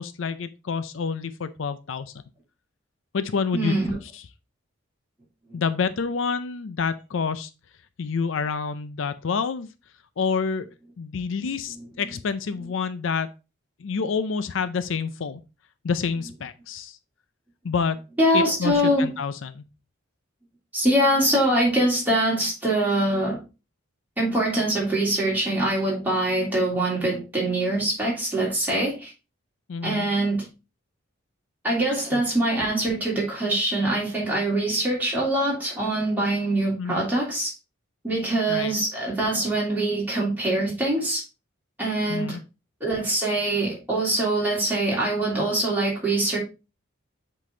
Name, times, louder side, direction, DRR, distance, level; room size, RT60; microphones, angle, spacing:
voice 1, 0.0-2.1 3.1-3.7 4.0-4.3 5.5-7.5 8.0-9.7 10.2-10.7 11.0-13.3 13.8-15.4 15.8-17.0 17.6-18.0 18.3-19.6 29.7-30.1 32.1-32.2 36.8-37.0 38.5-38.7 42.1-42.4, left 5 dB, 65° left, 0.5 m, -28 dB
voice 2, 3.5-3.9 5.5-5.6 11.8-11.9 18.2-19.1 20.7-23.4 24.2-29.1 29.8-30.5 31.6-37.5 38.0-41.2 41.8-42.4 42.8-46.4, right 1 dB, 10° right, 3.1 m, -23 dB
7.5 x 3.9 x 3.7 m
head